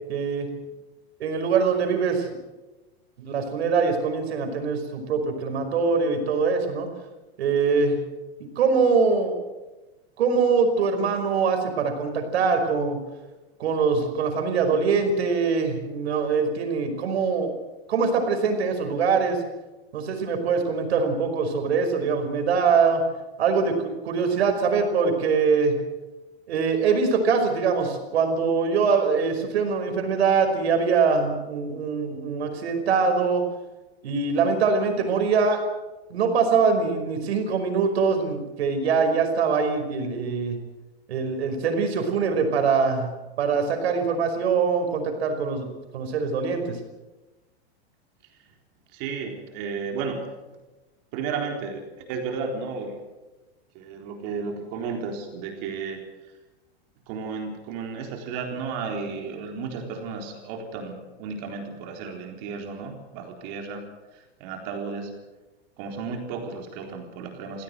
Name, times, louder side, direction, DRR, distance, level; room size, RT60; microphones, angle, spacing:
voice 1, 0.1-0.5 1.2-2.3 3.2-6.9 7.4-8.0 8.4-9.4 10.2-13.0 13.6-17.5 17.9-19.4 19.9-23.0 23.4-25.8 26.5-33.4 34.0-35.6 36.1-40.6 41.1-46.8, right 5 dB, 80° right, 6 dB, 5.3 m, -23 dB
voice 2, 48.9-50.2 51.1-53.0 53.7-56.0 57.1-63.8 64.1-65.1 65.8-67.6, right 5 dB, 40° right, 3 dB, 4.0 m, -33 dB
23.0 x 16.5 x 7.8 m, 1.1 s
supercardioid pair, 165°, 32 cm